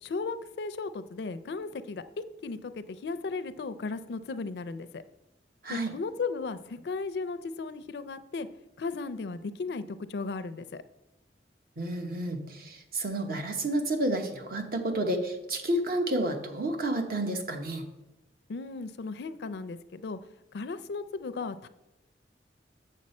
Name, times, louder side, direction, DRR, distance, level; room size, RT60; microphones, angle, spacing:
voice 1, 0.0-5.0 5.7-8.5 8.8-10.8 18.5-20.2 20.5-21.7, left 4 dB, 65° left, 14 dB, 0.4 m, -36 dB
voice 2, 5.6-6.0 11.8-17.8, right 1 dB, 55° right, 5 dB, 1.0 m, -30 dB
7.4 x 6.5 x 4.2 m, 0.94 s
head